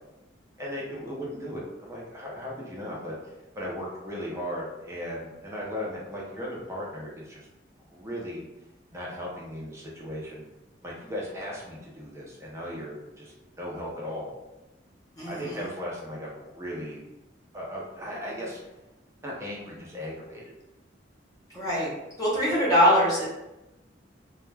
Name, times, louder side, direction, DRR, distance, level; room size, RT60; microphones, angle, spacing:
voice 1, 0.6-3.1 3.6-7.5 7.9-8.5 8.9-10.5 10.8-14.3 15.2-17.0 17.5-18.6 19.2-20.4, equal, 15° right, -5 dB, 0.6 m, -37 dB
voice 2, 15.2-15.7 21.5-21.9 22.2-23.2, equal, 20° left, -8 dB, 0.8 m, -23 dB
2.3 x 2.2 x 3.2 m, 0.98 s
head